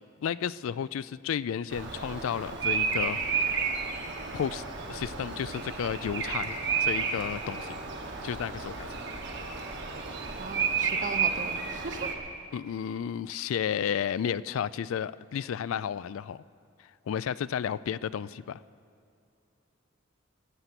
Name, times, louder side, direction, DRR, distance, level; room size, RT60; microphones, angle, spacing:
voice 1, 0.0-3.5 4.3-4.6 4.9-6.5 6.8-7.7 8.2-9.0 12.5-16.4 17.1-18.6, left 8 dB, 80° left, 18 dB, 0.3 m, -32 dB
Bird vocalization bird call bird song, 1.7-12.1, right 5 dB, 60° right, 1.4 m, -32 dB
voice 2, 10.4-12.1, right 4 dB, 40° right, 10 dB, 0.7 m, -38 dB
21.0 x 8.1 x 5.9 m, 2.4 s
head